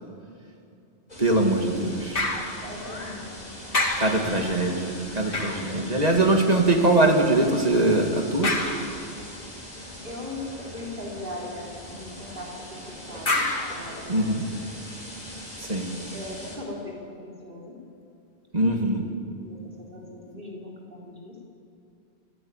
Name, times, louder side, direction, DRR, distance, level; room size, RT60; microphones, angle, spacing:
sound 1, 1.1-16.6, equal, 35° left, 4.6 m, -41 dB
voice 1, 1.2-2.3 4.0-8.5 14.1-14.4 15.6-15.9 18.5-19.0, right 2 dB, 40° right, 2 dB, 2.3 m, -22 dB
sound 2, 2.2-3.4 3.7-6.6 8.4-9.4 13.3-14.7 15.3-15.4, left 2 dB, 55° left, 2.5 m, -31 dB
voice 2, 2.6-3.4 10.0-10.4 10.7-13.4 13.7-14.3 16.1-17.7 19.4-21.5, left 2 dB, 55° right, -3 dB, 4.0 m, -39 dB
29.5 x 12.5 x 8.9 m, 2.5 s
omnidirectional pair, 1.1 m